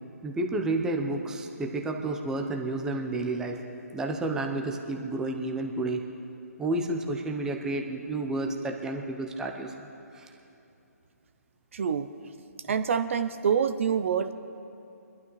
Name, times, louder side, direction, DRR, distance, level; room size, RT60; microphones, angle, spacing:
voice 1, 0.2-3.6 3.9-6.0 6.6-9.9 10.1-10.3, right 2 dB, 5° right, 3 dB, 0.7 m, -31 dB
voice 2, 11.7-12.1 12.7-14.3, right 7 dB, 50° right, 10 dB, 0.5 m, -26 dB
24.0 x 12.0 x 3.1 m, 2.7 s
hypercardioid pair, 150°, 9 cm